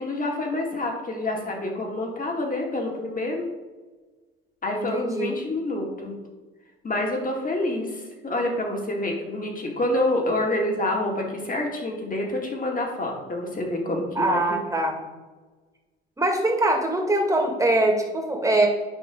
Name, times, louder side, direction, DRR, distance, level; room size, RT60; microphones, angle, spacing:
voice 1, 0.0-3.4 4.6-6.1 6.8-14.4, left 1 dB, 25° left, 1 dB, 2.4 m, -27 dB
voice 2, 4.7-5.4 14.2-15.0 16.2-18.7, right 2 dB, 10° right, 1 dB, 2.1 m, -23 dB
10.0 x 5.6 x 3.9 m, 1.3 s
hypercardioid pair, 60°, 30 cm